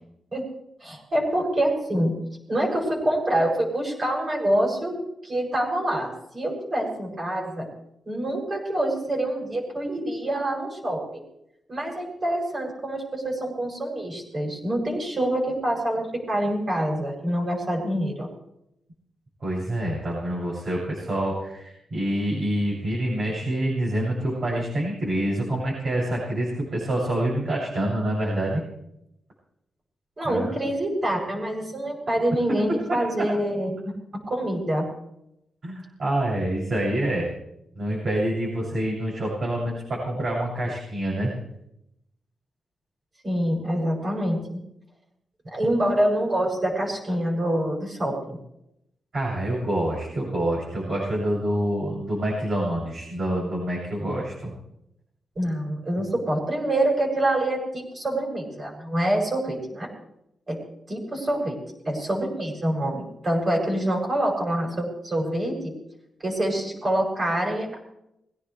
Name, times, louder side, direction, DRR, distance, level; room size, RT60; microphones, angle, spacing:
voice 1, 0.8-2.1 2.5-7.7 8.0-11.2 11.7-18.3 30.2-33.7 34.1-34.9 43.2-44.6 45.5-48.4 55.4-59.9 60.5-60.6 60.9-61.6 61.8-65.7 66.2-67.8, right 1 dB, 35° right, -1 dB, 7.7 m, -26 dB
voice 2, 19.4-28.6 30.2-30.6 32.7-33.3 35.6-37.3 37.7-41.3 49.1-54.5, right 1 dB, 50° right, -5 dB, 7.7 m, -27 dB
22.5 x 17.5 x 3.5 m, 0.82 s
wide cardioid pair, 120°, 0 cm